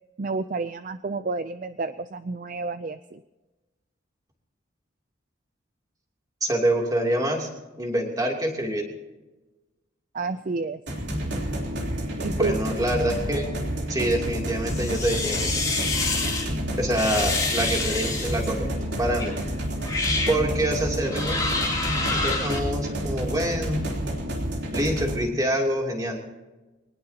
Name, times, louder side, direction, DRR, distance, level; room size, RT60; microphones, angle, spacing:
voice 1, 0.2-3.2 10.1-10.8 12.2-12.6, right 3 dB, 40° right, 11 dB, 0.4 m, -30 dB
voice 2, 6.4-7.5 7.8-8.9 12.4-13.5 13.9-15.7 16.8-18.7 19.0-19.4 20.3-21.5 22.1-23.9 24.7-26.2, right 1 dB, 20° right, 0 dB, 3.0 m, -26 dB
sound 1, 10.9-25.2, equal, 60° right, 3.4 m, -29 dB
sound 2, 14.7-16.5 16.9-18.5 19.2-19.3 19.8-20.4 21.1-22.6, left 3 dB, 20° left, 2.5 m, -27 dB
23.5 x 19.5 x 2.9 m, 1.1 s
head